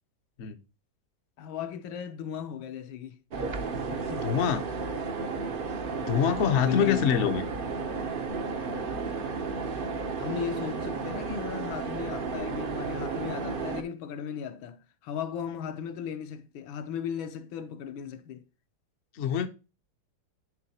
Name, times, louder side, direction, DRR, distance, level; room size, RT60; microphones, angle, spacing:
voice 1, 1.4-3.2 3.7-4.2 6.6-7.1 10.2-18.4, left 8 dB, 85° left, 1.5 m, -36 dB
sound 1, 3.3-13.8, right 4 dB, 80° right, 0.4 m, -33 dB
voice 2, 4.2-4.6 6.0-7.4 19.1-19.5, left 8 dB, 70° left, 0.6 m, -25 dB
10.0 x 3.9 x 2.8 m
omnidirectional pair, 2.1 m